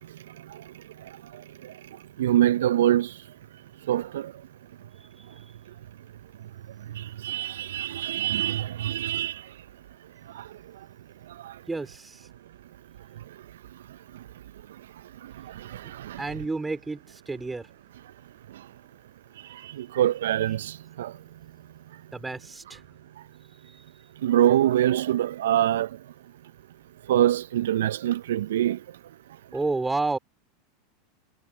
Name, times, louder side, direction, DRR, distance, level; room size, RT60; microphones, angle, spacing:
voice 1, 2.2-3.1 3.9-4.3 7.0-9.4 10.3-10.4 15.7-16.2 19.8-21.1 24.2-25.9 27.1-28.8, right 12 dB, 70° right, 1.1 m, -24 dB
voice 2, 11.7-12.2 16.2-17.7 22.1-22.8 29.5-30.2, right 3 dB, 10° right, 5.4 m, -30 dB
figure-of-eight pair, 85°, 0 cm